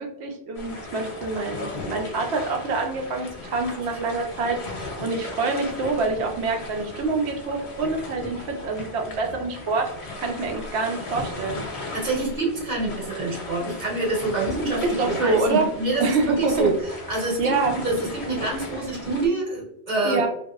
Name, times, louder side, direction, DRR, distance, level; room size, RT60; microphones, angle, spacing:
voice 1, 0.0-11.6 14.8-15.7 16.0-16.7 17.4-17.8 20.0-20.3, right 3 dB, 80° right, 3 dB, 0.9 m, -26 dB
sound 1, 0.5-19.3, left 2 dB, 80° left, 1.0 m, -37 dB
voice 2, 11.9-16.7 17.1-20.2, right 3 dB, 45° right, -3 dB, 1.1 m, -26 dB
2.9 x 2.6 x 2.3 m, 0.79 s
omnidirectional pair, 1.1 m